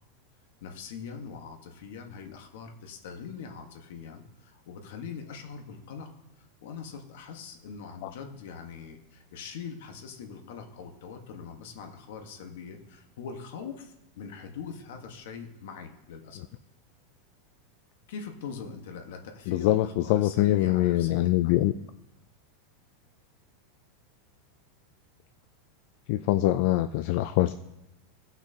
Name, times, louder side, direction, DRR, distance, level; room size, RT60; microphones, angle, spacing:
voice 1, 0.6-6.1 6.4-16.5 18.1-21.5, left 6 dB, 70° left, 4 dB, 1.3 m, -42 dB
voice 2, 19.5-21.7 26.1-27.5, left 15 dB, 50° left, 10 dB, 0.3 m, -24 dB
17.0 x 5.9 x 2.8 m, 0.91 s
supercardioid pair, 160°, 0 cm